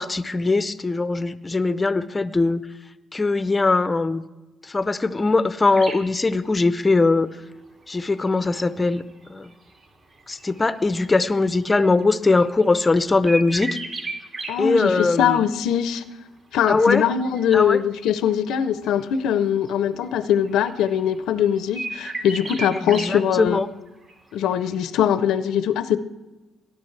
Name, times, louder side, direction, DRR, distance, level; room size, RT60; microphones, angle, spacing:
voice 1, 0.0-2.6 3.1-4.2 4.7-7.3 7.9-9.0 9.3-9.5 10.3-13.8 14.6-15.4 16.7-17.0 17.5-17.8 22.9-23.7, left 3 dB, 20° left, 0.5 m, -21 dB
sound 1, 5.7-6.1 7.2-7.3 8.1-12.8 13.3-14.5 14.8-15.3 15.5-16.0 16.8-18.6 18.8-19.4 19.7-19.8 20.0-21.1 21.4-23.1 23.5-23.6 23.9-24.4 24.6-24.7, right 2 dB, 45° right, 2.3 m, -35 dB
voice 2, 14.5-16.0 16.5-23.6 24.3-26.0, left 9 dB, 85° left, 0.6 m, -22 dB
18.5 x 10.5 x 3.2 m
cardioid pair, 115°, 0 cm